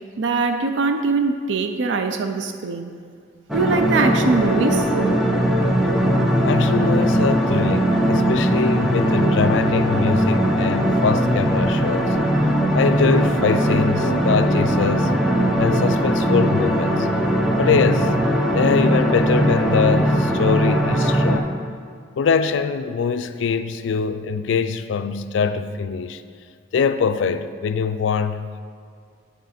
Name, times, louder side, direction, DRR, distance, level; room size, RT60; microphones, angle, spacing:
voice 1, 0.2-2.9 3.5-4.9, right 3 dB, 70° right, 7 dB, 0.4 m, -21 dB
sound 1, 3.5-21.4, equal, ahead, 0.5 m, -19 dB
voice 2, 6.5-12.2 12.7-15.1 15.6-17.1 17.6-18.2 18.5-21.5 22.2-26.2 26.7-28.6, left 5 dB, 75° left, 11 dB, 0.3 m, -23 dB
10.5 x 3.6 x 4.2 m, 2.2 s
head